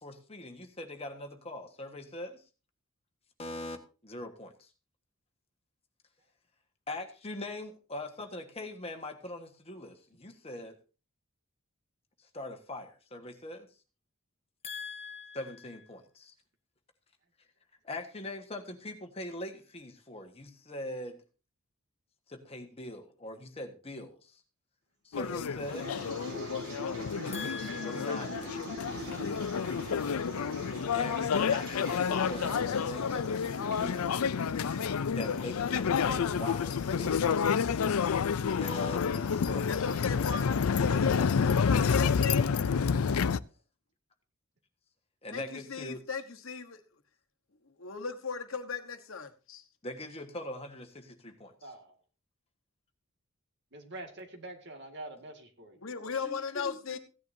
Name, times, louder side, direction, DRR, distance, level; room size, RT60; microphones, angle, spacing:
voice 1, 0.0-2.4 3.4-3.8 4.0-4.7 6.9-10.8 12.3-13.7 14.6-16.3 17.8-21.2 22.3-24.4 25.0-25.9 27.3-28.8 30.9-34.1 35.1-38.2 38.6-39.0 39.3-39.8 45.2-46.0 49.8-51.5 56.2-57.0, left 1 dB, 30° left, 5 dB, 1.5 m, -42 dB
sound 1, 25.1-43.4, left 6 dB, 85° left, 0.5 m, -29 dB
sound 2, 25.4-41.1, equal, 80° right, 3.9 m, -44 dB
voice 2, 39.7-42.6 45.3-46.8 47.8-49.6 55.8-57.0, left 5 dB, 65° left, 6 dB, 1.2 m, -37 dB
voice 3, 42.6-43.4 51.6-52.0 53.7-55.8, right 2 dB, 55° right, 4 dB, 2.1 m, -47 dB
16.0 x 10.5 x 2.7 m, 0.33 s
head